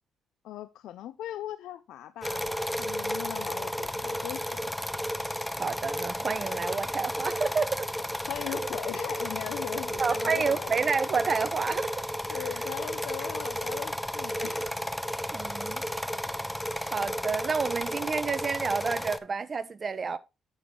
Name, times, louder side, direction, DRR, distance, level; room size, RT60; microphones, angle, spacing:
voice 1, 0.4-2.5 2.8-4.7 8.3-10.7 12.3-14.7, left 12 dB, 85° left, 0.3 m, -39 dB
sound 1, 2.2-19.2, equal, 5° left, 0.6 m, -33 dB
voice 2, 5.5-7.9 8.6-8.7 10.0-12.5 15.3-15.8 16.8-20.2, right 5 dB, 40° right, 0.8 m, -30 dB
7.9 x 6.4 x 3.7 m
cardioid pair, 90°, 0 cm